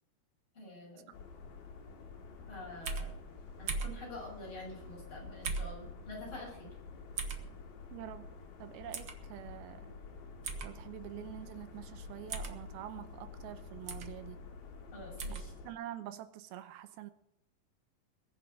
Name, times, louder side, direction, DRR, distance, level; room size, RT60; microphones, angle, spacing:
voice 1, 0.5-1.1 2.5-3.2 3.6-6.7 14.9-15.5, left 2 dB, 35° left, 7.4 m, -47 dB
sound 1, 1.1-15.7, left 5 dB, 75° left, 3.7 m, -49 dB
sound 2, 2.9-3.1 3.7-4.0 5.4-5.8 7.2-7.4 8.9-9.1 10.4-10.7 12.3-12.6 13.9-14.1 15.2-15.4, right 4 dB, 65° right, 1.1 m, -37 dB
voice 2, 7.9-8.3 8.6-9.9 10.6-14.4 15.3-17.1, right 12 dB, 85° right, 2.7 m, -46 dB
21.5 x 7.4 x 6.3 m
omnidirectional pair, 4.3 m